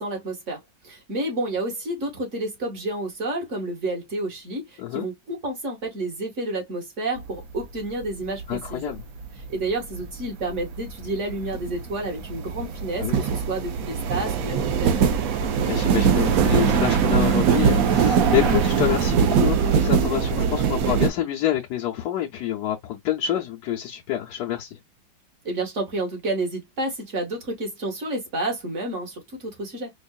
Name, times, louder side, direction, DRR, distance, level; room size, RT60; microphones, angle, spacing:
voice 1, 0.0-8.9 9.4-15.1 25.4-29.9, right 2 dB, 45° right, 2.0 m, -30 dB
sound 1, 7.2-7.6 8.0-21.1, right 7 dB, 65° right, 1.0 m, -22 dB
voice 2, 8.5-9.0 13.0-13.2 15.7-24.8, left 12 dB, 70° left, 1.2 m, -27 dB
5.3 x 2.5 x 2.3 m
omnidirectional pair, 1.9 m